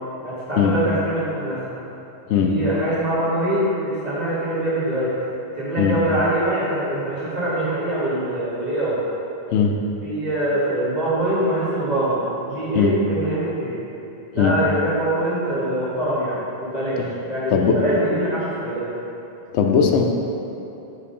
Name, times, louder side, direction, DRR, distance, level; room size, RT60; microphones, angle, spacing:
voice 1, 0.2-1.8 2.4-5.1 5.6-9.0 10.0-13.8 14.3-17.0 17.3-18.9, right 1 dB, 40° right, -10 dB, 1.6 m, -23 dB
voice 2, 17.5-17.8 19.5-20.0, left 7 dB, 85° left, 3 dB, 0.9 m, -18 dB
4.7 x 3.9 x 5.4 m, 3.0 s
omnidirectional pair, 1.1 m